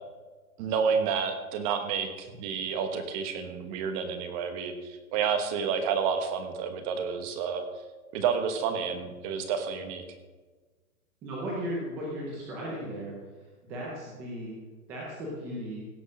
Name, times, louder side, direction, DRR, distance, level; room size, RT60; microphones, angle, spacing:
voice 1, 0.6-7.7 8.1-10.0, right 6 dB, 25° right, 7 dB, 1.2 m, -30 dB
voice 2, 11.2-14.5 14.9-15.9, equal, 5° right, -4 dB, 0.5 m, -36 dB
16.5 x 6.3 x 6.2 m, 1.3 s
hypercardioid pair, 160°, 44 cm